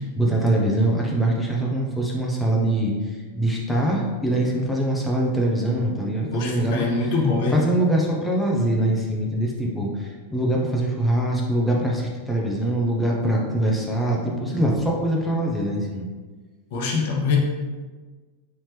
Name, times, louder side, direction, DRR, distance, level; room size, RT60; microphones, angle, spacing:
voice 1, 0.2-2.9 3.3-7.1 7.5-16.1, right 1 dB, 5° left, -3 dB, 0.7 m, -23 dB
voice 2, 6.3-7.6 16.7-17.4, left 4 dB, 50° left, 0 dB, 0.7 m, -23 dB
4.4 x 2.8 x 3.2 m, 1.4 s
figure-of-eight pair, 90°, 0 cm